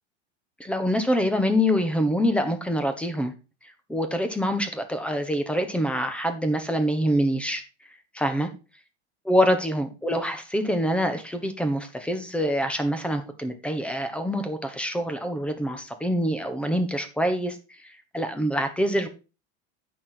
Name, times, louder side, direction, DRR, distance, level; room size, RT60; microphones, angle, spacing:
voice 1, 0.6-3.3 3.9-7.6 8.1-8.5 9.2-17.6 17.8-19.1, equal, 5° left, 8 dB, 1.2 m, -25 dB
9.2 x 6.1 x 4.4 m, 0.31 s
supercardioid pair, 140°, 33 cm